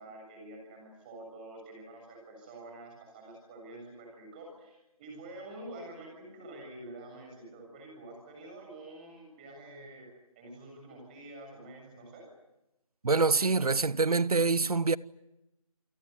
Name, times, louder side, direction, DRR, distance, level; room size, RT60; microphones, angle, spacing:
voice 1, 0.0-10.1 10.4-12.3, right 1 dB, 15° right, 7.3 m, -47 dB
voice 2, 13.0-15.0, right 4 dB, 85° right, 0.9 m, -25 dB
28.0 x 19.5 x 9.6 m
figure-of-eight pair, 170°, 19 cm